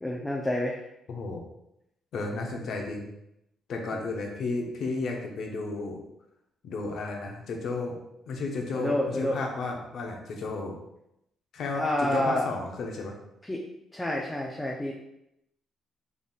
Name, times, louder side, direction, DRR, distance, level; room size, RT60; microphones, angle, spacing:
voice 1, 0.0-0.8 8.7-9.4 11.7-12.5 13.5-13.6 13.9-14.9, left 1 dB, 10° left, -2 dB, 0.5 m, -28 dB
voice 2, 1.1-1.4 2.1-3.1 3.7-6.0 6.6-7.9 8.3-10.8 11.5-13.1, left 3 dB, 65° left, 1 dB, 0.7 m, -33 dB
3.9 x 3.5 x 2.4 m, 0.82 s
cardioid pair, 90°, 0 cm